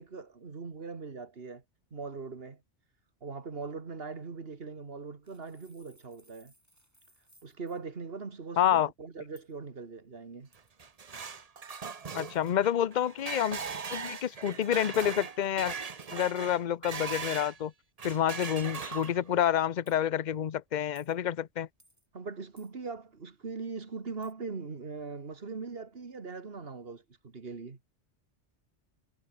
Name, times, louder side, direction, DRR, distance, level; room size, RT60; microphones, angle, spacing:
voice 1, 0.0-1.6 1.9-2.6 3.2-6.5 7.4-10.5 22.1-27.8, right 4 dB, 55° right, 2.1 m, -41 dB
sound 1, 5.2-7.8 9.4-9.5 10.5-11.0 11.9-12.1 14.1-14.4 15.2-15.4 16.0-16.3 18.0-18.2 18.8-19.1 19.9-20.0 21.0-21.2 21.8-22.1 22.6-22.7 24.2-24.3, right 1 dB, 15° right, 5.3 m, -64 dB
voice 2, 8.6-8.9 12.1-13.6 13.9-15.7 16.1-17.7 18.0-21.7, left 10 dB, 45° left, 0.7 m, -28 dB
sound 2, 10.6-17.6 18.0-19.4, right 5 dB, 35° right, 0.9 m, -39 dB
omnidirectional pair, 1.2 m